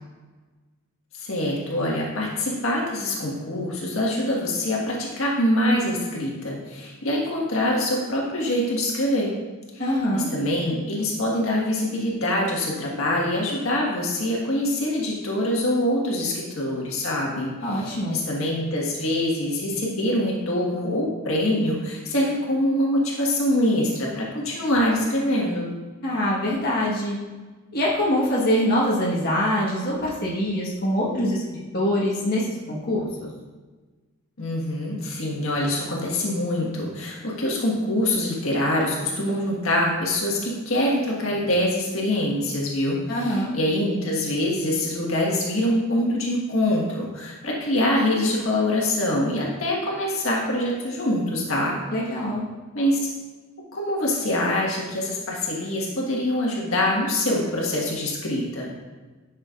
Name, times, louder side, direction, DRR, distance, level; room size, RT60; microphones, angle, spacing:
voice 1, 1.2-9.3 10.1-25.7 34.4-51.8 52.7-53.1 53.7-58.7, left 1 dB, 75° left, -3 dB, 1.6 m, -24 dB
voice 2, 9.8-10.3 17.6-18.2 26.0-27.1 27.7-33.0 43.1-43.5 51.9-52.4, equal, 45° left, -6 dB, 1.5 m, -24 dB
10.5 x 6.4 x 2.5 m, 1.3 s
head